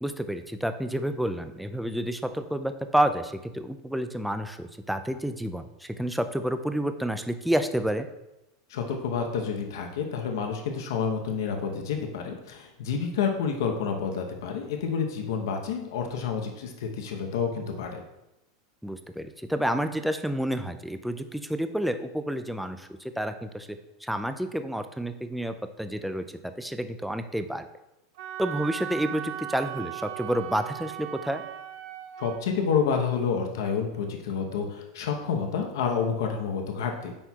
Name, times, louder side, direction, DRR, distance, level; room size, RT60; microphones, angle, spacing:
voice 1, 0.0-8.1 18.8-26.2 26.6-27.7 28.4-31.4, right 1 dB, ahead, 8 dB, 0.3 m, -29 dB
voice 2, 8.7-18.0 32.2-37.1, left 6 dB, 80° left, 3 dB, 0.8 m, -29 dB
Wind instrument woodwind instrument, 28.2-32.4, right 12 dB, 60° right, 0.6 m, -37 dB
9.8 x 4.4 x 2.3 m, 0.94 s
supercardioid pair, 150°, 2 cm